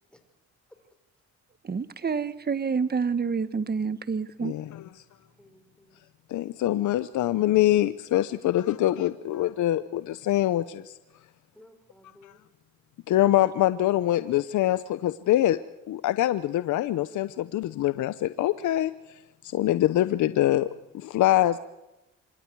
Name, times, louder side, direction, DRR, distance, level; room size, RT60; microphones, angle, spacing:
voice 1, 1.6-4.5, right 5 dB, 30° right, 13 dB, 1.4 m, -28 dB
voice 2, 4.4-4.9 6.3-11.0 13.1-15.6 15.9-20.7 20.9-21.6, left 14 dB, 75° left, 13 dB, 0.8 m, -24 dB
voice 3, 5.4-6.1 11.5-12.5, left 1 dB, 5° left, 6 dB, 5.7 m, -56 dB
26.5 x 24.0 x 4.7 m, 0.98 s
cardioid pair, 90°, 30 cm